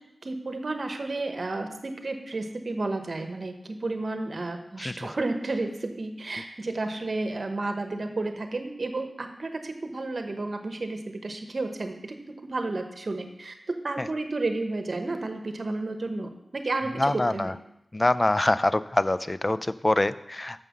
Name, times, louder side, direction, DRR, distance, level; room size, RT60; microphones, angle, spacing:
voice 1, 0.2-12.2 12.5-13.5 13.8-17.5, right 2 dB, 55° right, 6 dB, 0.9 m, -32 dB
voice 2, 4.8-5.1 14.0-14.1 16.9-17.5 17.9-20.6, left 2 dB, 30° left, 15 dB, 0.3 m, -25 dB
6.7 x 5.5 x 6.2 m, 0.84 s
wide cardioid pair, 65°, 0 cm